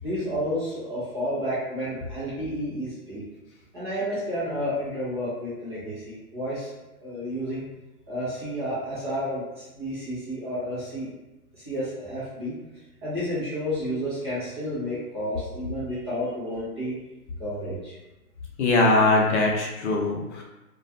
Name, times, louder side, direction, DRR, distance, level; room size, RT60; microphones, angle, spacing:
voice 1, 0.0-3.2 3.7-6.7 7.0-7.6 8.1-11.1 11.5-12.5 13.0-16.9 17.4-18.0, equal, 20° right, -11 dB, 0.4 m, -31 dB
voice 2, 18.6-20.4, left 2 dB, 50° left, -1 dB, 0.6 m, -21 dB
2.3 x 2.2 x 2.6 m, 1.0 s
hypercardioid pair, 135°, 45 cm